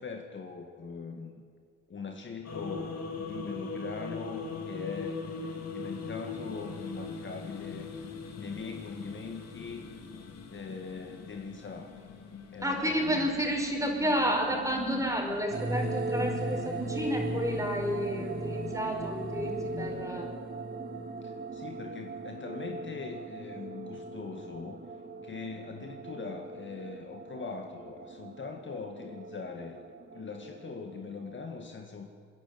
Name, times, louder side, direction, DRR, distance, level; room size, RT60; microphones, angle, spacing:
voice 1, 0.0-1.3 1.9-7.9 8.4-9.9 10.5-11.9 12.5-13.3 21.2-24.8 25.2-29.8 30.1-32.1, left 4 dB, 40° left, 4 dB, 2.1 m, -41 dB
sound 1, 2.4-20.0, left 4 dB, 55° left, 2.8 m, -42 dB
voice 2, 12.6-20.3, right 1 dB, 10° right, 1 dB, 5.4 m, -31 dB
sound 2, 15.5-31.4, right 2 dB, 35° right, 2.3 m, -38 dB
28.0 x 10.5 x 9.6 m, 2.2 s
cardioid pair, 90°, 30 cm